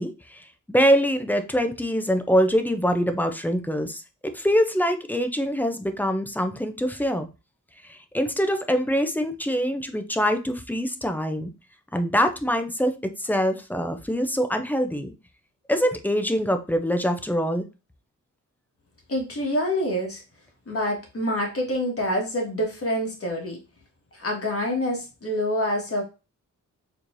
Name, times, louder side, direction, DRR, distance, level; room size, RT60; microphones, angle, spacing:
voice 1, 0.0-7.3 7.9-11.5 11.9-12.9 13.2-15.1 15.7-17.7, equal, 5° left, 7 dB, 0.5 m, -24 dB
voice 2, 19.1-20.2 20.7-23.6 24.1-26.0, left 1 dB, 45° left, 0 dB, 1.6 m, -26 dB
4.3 x 3.1 x 2.6 m, 0.29 s
wide cardioid pair, 95°, 32 cm